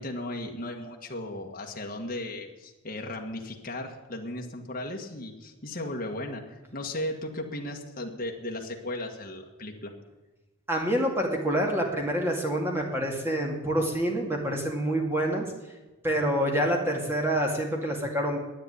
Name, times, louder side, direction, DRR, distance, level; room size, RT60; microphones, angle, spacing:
voice 1, 0.0-9.9, left 1 dB, 40° left, 1 dB, 1.7 m, -36 dB
voice 2, 10.7-15.5 16.0-18.4, equal, 10° right, 0 dB, 2.3 m, -27 dB
11.0 x 9.3 x 9.7 m, 1.1 s
head